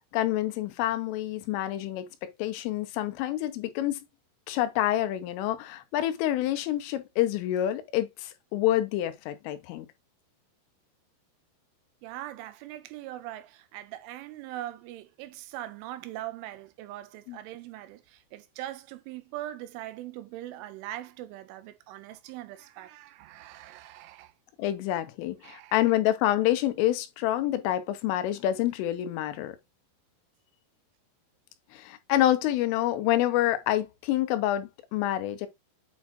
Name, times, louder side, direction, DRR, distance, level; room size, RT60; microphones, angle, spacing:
voice 1, 0.1-4.0 4.5-9.9 17.3-17.4 24.6-29.6 31.7-35.5, left 13 dB, 85° left, 3.5 m, -27 dB
voice 2, 12.0-24.3 25.4-26.0, right 14 dB, 90° right, 3.2 m, -41 dB
8.5 x 4.1 x 2.9 m
omnidirectional pair, 5.6 m